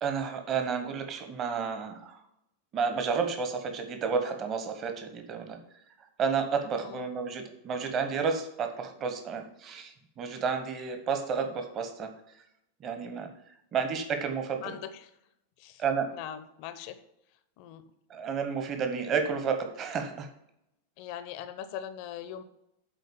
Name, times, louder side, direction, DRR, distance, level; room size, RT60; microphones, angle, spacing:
voice 1, 0.0-2.2 2.7-5.6 6.2-12.1 12.8-13.3 13.7-14.8 15.8-16.1 18.1-20.3, right 6 dB, 30° right, 6 dB, 1.2 m, -31 dB
voice 2, 16.1-17.0 17.6-17.8 21.0-22.4, left 10 dB, 45° left, 11 dB, 0.8 m, -40 dB
9.0 x 4.0 x 7.1 m, 0.82 s
figure-of-eight pair, 90°, 0 cm